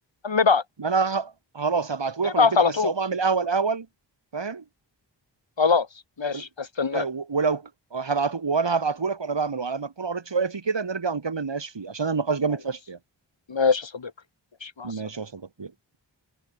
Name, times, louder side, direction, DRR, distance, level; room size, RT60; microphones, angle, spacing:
voice 1, 0.2-0.6 2.2-2.9 5.6-5.9 6.2-7.1 13.5-14.1 14.6-14.9, left 5 dB, 85° left, 7.8 m, -22 dB
voice 2, 0.8-3.9 4.3-4.6 6.3-6.4 6.9-7.6 7.9-13.0 14.8-16.0, right 5 dB, 75° right, 6.6 m, -27 dB
wide cardioid pair, 85°, 44 cm